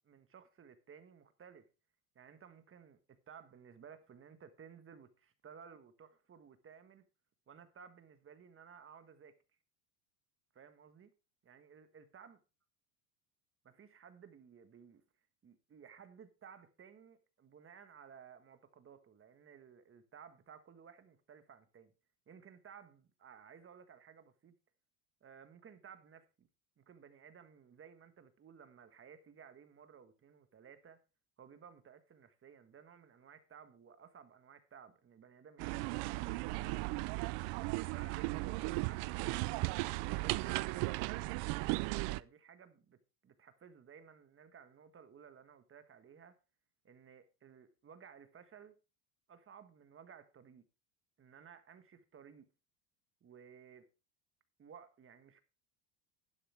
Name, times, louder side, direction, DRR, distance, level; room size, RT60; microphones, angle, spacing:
voice 1, 0.0-1.6 2.1-7.0 7.5-9.4 10.5-11.1 11.4-12.4 13.6-15.0 15.4-21.9 22.3-24.5 25.2-26.5 26.8-31.0 31.4-36.9 37.9-39.5 40.0-41.7 42.0-43.0 43.2-46.4 46.8-48.7 49.3-50.7 51.2-52.5 53.2-53.9 54.6-55.4, right 7 dB, 25° right, 1.5 m, -57 dB
sound 1, 35.6-42.2, right 23 dB, 60° right, 0.6 m, -36 dB
12.0 x 10.0 x 3.5 m
supercardioid pair, 120°, 47 cm